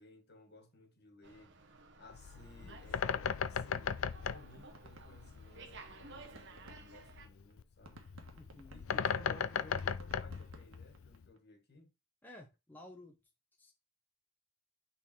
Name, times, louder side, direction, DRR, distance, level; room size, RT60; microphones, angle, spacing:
voice 1, 0.0-4.0 4.3-8.1 8.7-11.9, left 2 dB, 55° left, 1.9 m, -57 dB
Slam, 1.2-7.3, right 3 dB, 60° right, 1.2 m, -55 dB
Bird, 2.1-11.3, left 7 dB, 80° left, 0.5 m, -38 dB
sound 1, 3.8-3.9 4.1-4.2 4.5-5.8 6.1-11.4, right 2 dB, 85° right, 1.5 m, -58 dB
voice 2, 8.3-8.8 12.2-13.2 13.6-13.7, left 1 dB, 10° left, 1.1 m, -54 dB
6.3 x 4.1 x 4.4 m
head